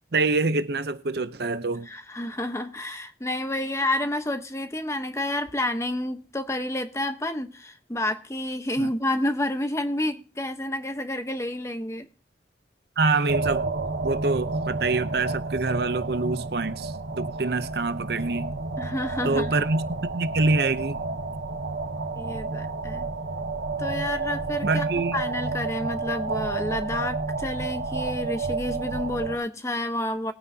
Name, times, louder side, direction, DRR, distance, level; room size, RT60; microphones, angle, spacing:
voice 1, 0.1-1.9 8.8-8.9 13.0-13.7 14.0-18.5 19.2-21.0 24.6-25.2, right 3 dB, 60° right, 0.7 m, -25 dB
voice 2, 1.9-12.1 18.8-19.5 22.1-23.1 23.8-24.9 25.1-30.3, left 1 dB, 15° left, 1.0 m, -29 dB
sound 1, 13.3-29.4, right 3 dB, 85° right, 1.0 m, -30 dB
20.5 x 9.4 x 2.8 m
head